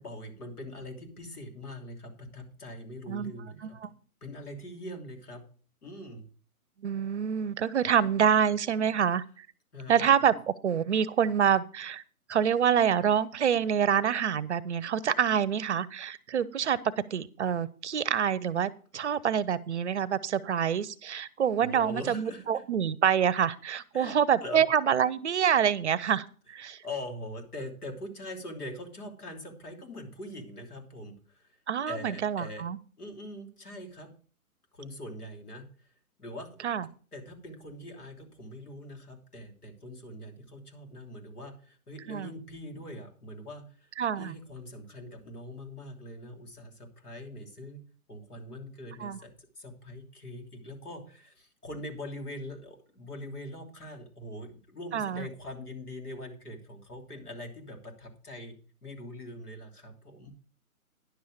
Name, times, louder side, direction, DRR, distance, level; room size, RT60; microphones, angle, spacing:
voice 1, 0.0-3.8 4.2-5.4 5.8-6.2 9.7-10.0 21.6-22.6 23.9-24.6 26.8-31.6 31.9-32.6 33.0-34.1 34.7-35.7 36.2-36.6 37.1-43.9 44.2-47.8 48.1-60.3, left 1 dB, 85° left, 3 dB, 3.2 m, -42 dB
voice 2, 6.8-9.5 9.9-10.3 10.6-12.0 12.3-16.8 17.1-26.8 31.7-32.8 36.6-36.9 42.1-42.3 44.0-44.3 49.0-49.2 54.9-55.3, right 8 dB, 50° right, 19 dB, 0.6 m, -26 dB
10.5 x 7.0 x 4.9 m, 0.40 s
hypercardioid pair, 150°, 44 cm